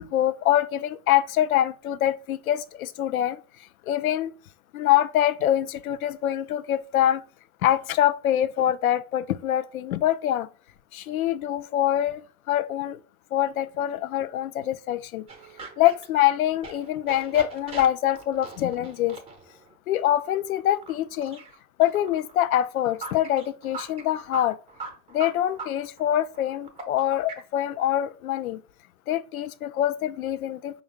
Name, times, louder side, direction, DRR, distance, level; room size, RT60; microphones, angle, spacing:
voice 1, 0.0-3.4 3.9-4.3 4.7-7.2 7.6-10.5 10.9-12.2 12.5-13.0 13.3-15.3 15.8-19.2 19.9-21.4 21.8-24.6 25.1-28.6 29.1-30.8, left 12 dB, 70° left, 0.5 m, -24 dB
sound 1, 15.3-27.4, right 4 dB, 15° right, 0.7 m, -42 dB
5.1 x 2.3 x 3.4 m
figure-of-eight pair, 85°, 45 cm